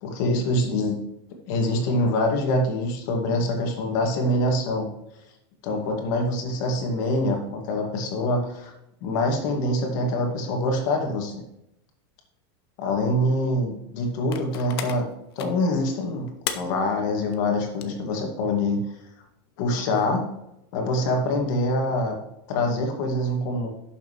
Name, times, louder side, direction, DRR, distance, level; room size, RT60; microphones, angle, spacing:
voice 1, 0.0-1.0 1.5-4.9 5.6-8.7 9.0-11.4 12.8-15.1 15.4-18.8 19.6-20.3 20.7-22.1 22.5-23.7, left 1 dB, 45° left, 2 dB, 2.3 m, -25 dB
sound 1, 14.3-15.7 15.9-16.0 16.3-16.6 17.1-17.4 17.7-18.0 19.9-20.0, left 9 dB, 65° left, 1.1 m, -33 dB
11.0 x 7.0 x 3.3 m, 0.82 s
supercardioid pair, 170°, 13 cm